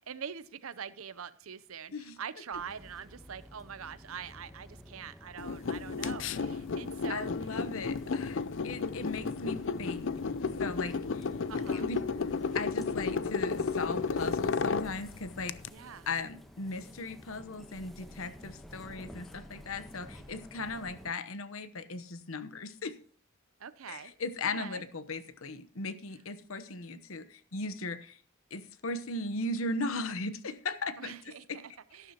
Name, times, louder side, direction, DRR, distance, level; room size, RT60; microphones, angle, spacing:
voice 1, 0.0-7.3 11.5-11.9 15.7-16.1 23.6-24.1 24.4-24.8 31.0-32.1, right 7 dB, 80° right, 16 dB, 0.7 m, -44 dB
sound 1, 2.5-21.1, equal, ahead, 1.0 m, -51 dB
sound 2, 5.4-15.7, left 5 dB, 60° left, 0.5 m, -33 dB
voice 2, 7.1-10.1 10.6-11.3 11.7-12.0 12.5-15.5 16.1-23.0 23.9-28.2 28.5-31.6, left 3 dB, 75° left, 13 dB, 1.0 m, -37 dB
12.5 x 12.0 x 2.9 m, 0.42 s
head